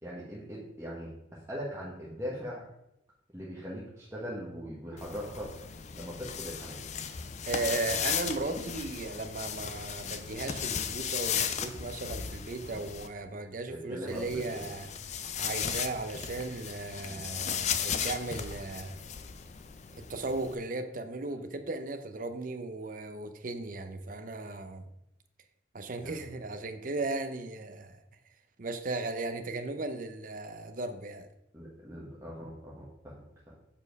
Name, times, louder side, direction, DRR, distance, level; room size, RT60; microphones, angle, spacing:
voice 1, 0.0-2.7 3.3-5.5 5.9-6.9 12.7-12.8 13.7-14.7 17.1-17.8 26.0-26.3 31.5-33.5, equal, 15° right, -7 dB, 1.2 m, -41 dB
sound 1, 5.0-13.1 14.1-20.6, left 8 dB, 35° left, 0.4 m, -36 dB
voice 2, 7.5-14.9 15.4-19.1 20.1-24.9 25.7-28.0 28.6-31.3, right 2 dB, 45° right, 9 dB, 0.6 m, -36 dB
7.2 x 4.4 x 5.3 m, 0.85 s
head